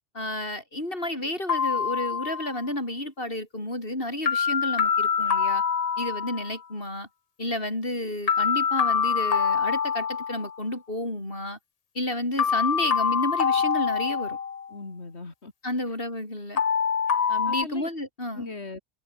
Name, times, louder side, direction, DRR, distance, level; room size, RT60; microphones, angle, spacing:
voice 1, 0.1-5.6 6.0-7.1 7.4-11.6 11.9-14.4 15.6-16.6 17.3-18.5, left 1 dB, 60° left, 7.6 m, -31 dB
sound 1, 1.5-2.6 4.3-6.6 8.3-10.6 12.4-14.7 16.6-17.6, left 6 dB, 40° left, 0.7 m, -25 dB
voice 2, 14.7-15.5 15.9-16.0 17.5-17.9 18.3-18.8, left 3 dB, 85° left, 3.2 m, -39 dB
omnidirectional pair, 1.1 m